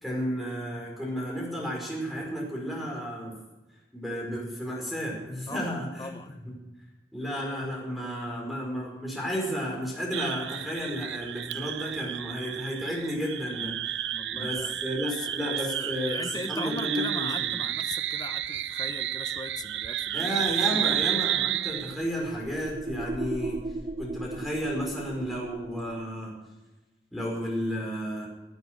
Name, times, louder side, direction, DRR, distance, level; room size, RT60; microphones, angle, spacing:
voice 1, 0.0-3.3 3.9-6.1 6.4-6.5 7.1-13.7 14.3-17.5 20.1-23.6 24.0-26.3 27.1-28.3, equal, ahead, -2 dB, 5.0 m, -32 dB
voice 2, 5.5-6.3 14.1-21.0, left 3 dB, 20° left, 8 dB, 1.0 m, -40 dB
sound 1, 10.1-22.0, right 12 dB, 85° right, 0.5 m, -31 dB
sound 2, 21.4-26.1, right 2 dB, 30° right, 0.5 m, -38 dB
17.5 x 9.4 x 6.3 m, 1.1 s
head